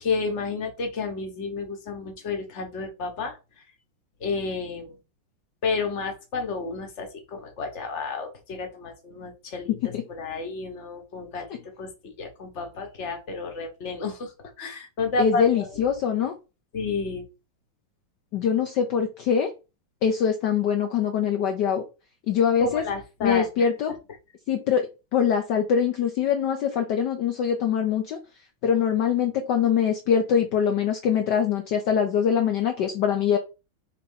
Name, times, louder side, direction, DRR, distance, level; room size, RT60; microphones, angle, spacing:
voice 1, 0.0-3.4 4.2-5.0 5.6-11.5 11.8-14.3 14.6-15.8 16.7-17.2 22.6-23.7, left 4 dB, 35° left, 4 dB, 1.5 m, -31 dB
voice 2, 9.7-10.0 15.2-16.3 18.3-19.5 20.0-21.8 22.3-22.8 23.2-24.0 24.5-28.2 28.6-33.4, left 7 dB, 65° left, 4 dB, 1.3 m, -23 dB
4.3 x 3.9 x 5.6 m, 0.29 s
omnidirectional pair, 2.3 m